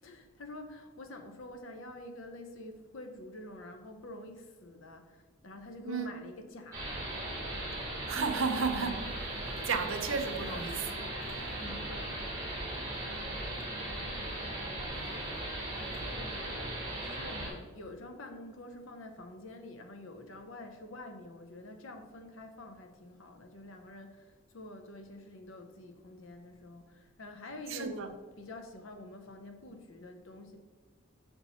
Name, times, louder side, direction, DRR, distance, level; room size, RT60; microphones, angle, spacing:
voice 1, 0.0-7.2 11.6-12.2 13.0-14.4 15.8-28.0 28.4-30.6, left 2 dB, 70° left, 0.7 m, -48 dB
voice 2, 5.8-6.2 8.1-9.1 9.6-11.0 27.7-28.1, right 5 dB, 70° right, 0.6 m, -33 dB
sound 1, 6.7-17.5, right 1 dB, 15° right, 1.5 m, -38 dB
5.3 x 4.5 x 4.1 m
head